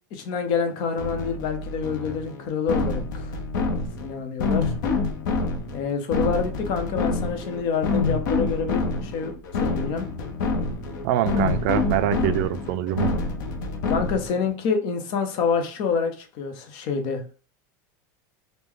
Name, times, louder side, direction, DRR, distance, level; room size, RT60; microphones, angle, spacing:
voice 1, 0.1-3.4 4.0-4.7 5.7-9.3 9.6-10.1 13.9-17.3, left 5 dB, 50° left, 0.7 m, -27 dB
sound 1, 1.0-14.5, left 3 dB, 85° left, 0.7 m, -27 dB
voice 2, 11.0-13.1, right 12 dB, 60° right, 0.4 m, -24 dB
3.2 x 2.1 x 3.6 m
supercardioid pair, 150°, 10 cm